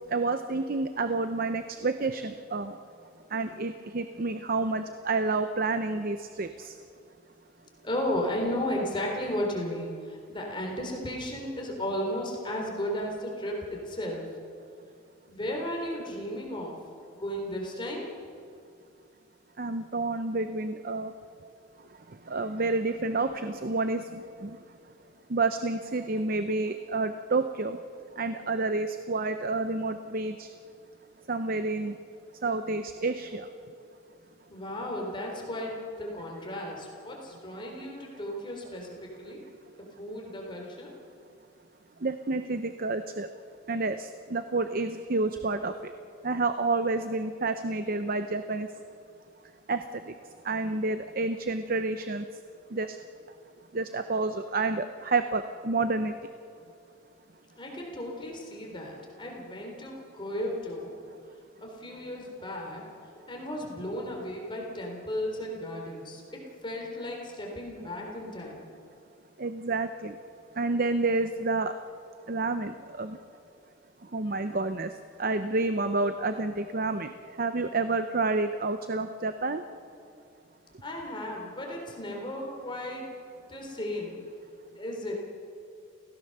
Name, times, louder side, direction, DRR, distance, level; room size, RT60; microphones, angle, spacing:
voice 1, 0.1-2.8 3.3-6.7 19.6-21.1 22.3-24.6 25.3-27.8 28.2-30.5 31.3-32.0 32.4-33.5 42.0-43.3 43.7-45.9 46.2-48.7 49.7-50.1 50.4-52.2 52.7-53.0 53.7-56.1 69.4-70.2 70.6-71.7 72.3-73.2 74.1-74.9 75.2-77.1 77.4-79.6, right 3 dB, 50° right, 9 dB, 0.7 m, -29 dB
voice 2, 7.8-14.3 15.3-16.7 17.1-18.1 34.5-39.4 40.0-40.9 57.5-60.9 61.6-68.7 80.8-83.1 83.5-84.2 84.7-85.1, left 1 dB, 25° left, 0 dB, 3.8 m, -34 dB
28.0 x 16.5 x 6.7 m, 2.4 s
head